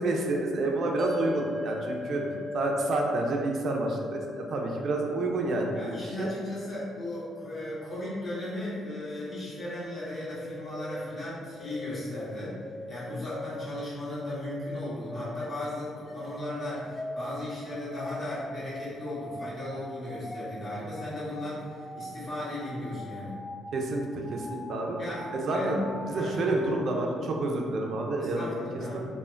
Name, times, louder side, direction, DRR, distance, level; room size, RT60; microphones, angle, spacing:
voice 1, 0.0-2.2 2.5-6.3 23.7-25.0 25.3-25.8 26.1-28.6 28.9-29.0, right 2 dB, 60° right, 1 dB, 0.4 m, -29 dB
sound 1, 1.0-13.5, left 3 dB, 10° right, 0.7 m, -41 dB
voice 2, 2.0-2.3 5.7-12.6 12.9-23.4 24.9-25.3 25.5-25.8 26.1-26.6 28.2-29.0, left 1 dB, 55° left, -11 dB, 1.5 m, -36 dB
sound 2, 8.9-26.8, left 1 dB, 25° left, 0.4 m, -42 dB
3.2 x 2.1 x 2.4 m, 2.1 s
cardioid pair, 80°, 0 cm